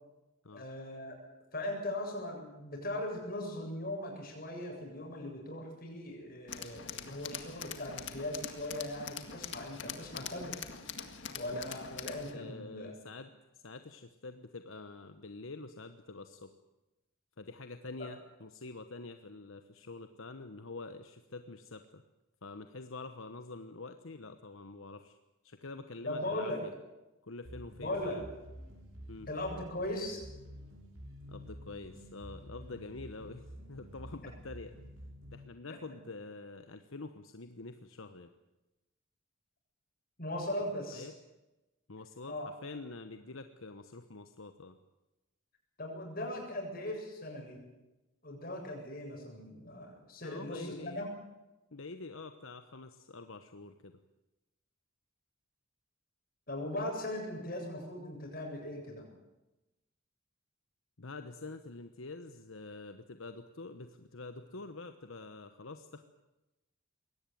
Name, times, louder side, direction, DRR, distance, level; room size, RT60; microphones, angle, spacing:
voice 1, 0.5-1.2 1.5-10.6 11.3-13.0 26.1-26.6 27.8-28.2 29.3-30.2 40.2-41.1 42.3-42.5 45.8-47.6 48.2-51.1 56.5-59.0, left 1 dB, 45° left, 1 dB, 7.8 m, -39 dB
Tools, 6.5-12.3, left 7 dB, 60° left, 2.0 m, -43 dB
voice 2, 12.3-16.5 17.4-22.0 22.4-25.2 25.4-26.7 27.2-28.3 29.1-29.3 31.3-34.8 35.3-38.3 40.9-41.1 41.9-44.8 50.2-51.0 51.7-54.0 61.0-66.0, left 3 dB, 75° left, 8 dB, 1.1 m, -46 dB
sound 1, 27.4-35.5, equal, 80° right, 6.1 m, -50 dB
22.5 x 18.0 x 9.4 m, 1.0 s
head